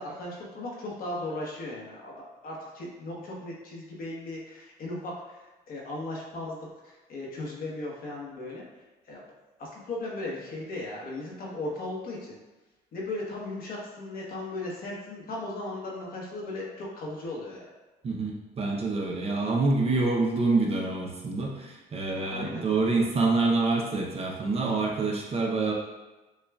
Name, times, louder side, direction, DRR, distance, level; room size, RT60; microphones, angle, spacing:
voice 1, 0.0-8.7 9.0-9.2 9.6-12.4 12.9-17.7 22.1-22.7, left 2 dB, 60° left, -3 dB, 1.0 m, -37 dB
voice 2, 18.0-25.7, right 3 dB, 35° right, -1 dB, 0.7 m, -26 dB
6.4 x 2.3 x 2.3 m, 1.1 s
cardioid pair, 110°, 17 cm